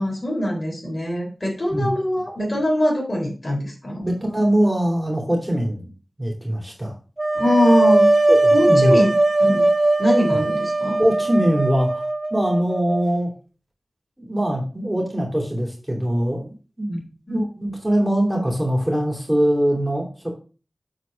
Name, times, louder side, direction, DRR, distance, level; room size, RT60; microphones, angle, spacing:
voice 1, 0.0-4.0 7.3-8.1 8.5-9.1 9.4-9.7 10.0-10.9 17.3-17.4, equal, 45° left, -1 dB, 3.4 m, -22 dB
voice 2, 4.0-5.9 6.2-6.9 8.3-9.0 11.0-12.0 12.3-13.3 14.2-17.0 17.3-20.3, right 1 dB, 15° right, -1 dB, 2.7 m, -22 dB
sound 1, 7.2-13.0, right 2 dB, 30° right, 0.8 m, -19 dB
7.8 x 4.1 x 5.1 m, 0.37 s
wide cardioid pair, 65°, 0 cm